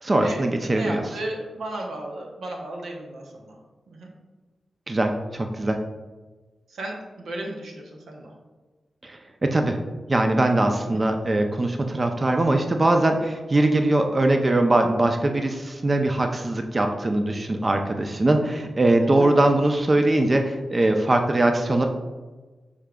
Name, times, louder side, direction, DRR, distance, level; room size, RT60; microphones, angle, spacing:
voice 1, 0.0-1.1 4.9-5.8 9.0-9.8 10.1-21.9, right 2 dB, 35° right, 4 dB, 0.4 m, -21 dB
voice 2, 0.7-3.6 3.9-4.1 6.7-8.3 10.9-11.0 19.1-19.3, right 1 dB, 85° right, 0 dB, 0.8 m, -34 dB
6.4 x 3.6 x 2.3 m, 1.3 s
cardioid pair, 55°, 0 cm